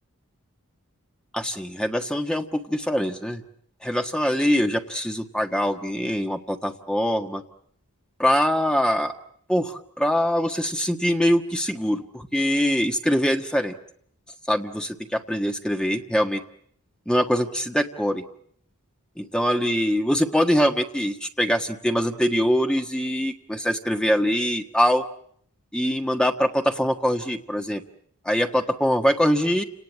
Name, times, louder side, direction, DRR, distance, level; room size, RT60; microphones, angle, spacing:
voice 1, 1.3-3.4 3.8-7.4 8.2-9.1 9.5-13.7 14.5-16.4 17.1-18.2 19.2-25.0 25.7-27.8 28.2-29.6, equal, 5° left, 5 dB, 1.5 m, -23 dB
29.0 x 19.0 x 8.7 m, 0.65 s
head